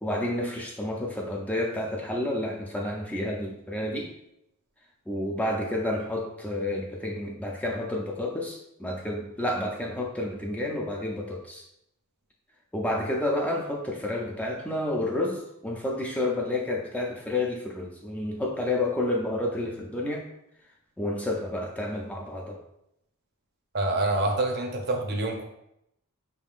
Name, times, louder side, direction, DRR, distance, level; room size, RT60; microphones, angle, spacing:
voice 1, 0.0-4.1 5.1-11.6 12.7-20.3 21.0-22.6, left 1 dB, 5° left, -1 dB, 0.4 m, -30 dB
voice 2, 23.7-25.4, right 2 dB, 50° right, 2 dB, 0.7 m, -26 dB
5.8 x 3.5 x 2.4 m, 0.79 s
head